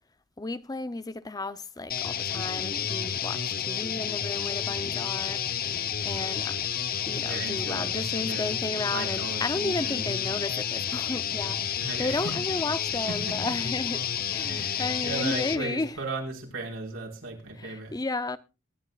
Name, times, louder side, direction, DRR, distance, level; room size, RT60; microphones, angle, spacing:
voice 1, 0.4-5.4 6.0-6.6 7.1-16.0 17.5-18.4, left 2 dB, 20° left, 0.6 m, -33 dB
sound 1, 1.9-15.6, left 8 dB, 50° left, 0.8 m, -30 dB
voice 2, 7.2-8.5 8.8-10.0 11.8-12.2 13.1-13.2 13.4-13.5 14.4-17.9, right 3 dB, 85° right, 4.8 m, -36 dB
23.0 x 10.5 x 2.4 m
head